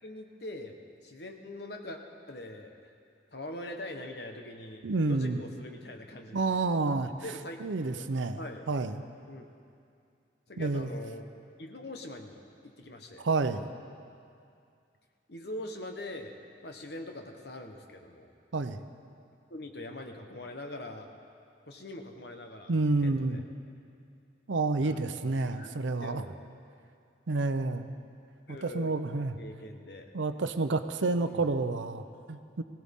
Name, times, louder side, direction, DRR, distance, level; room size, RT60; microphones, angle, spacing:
voice 1, 0.0-2.0 2.3-2.9 3.3-6.4 7.2-7.6 8.0-8.7 9.3-9.5 10.5-11.3 11.6-13.3 15.3-16.3 16.6-18.3 19.5-21.1 21.7-22.7 23.0-23.4 24.8-25.7 26.0-26.3 28.5-30.1 31.3-31.5, left 1 dB, 60° left, 4 dB, 1.2 m, -43 dB
voice 2, 4.8-5.4 6.3-7.1 7.6-8.4 8.7-9.0 10.6-10.9 13.2-13.7 18.5-18.8 22.7-23.4 24.5-26.2 27.3-27.9 28.5-29.4 30.1-32.6, right 3 dB, 80° right, 10 dB, 0.7 m, -29 dB
20.5 x 16.5 x 3.7 m, 2.4 s
head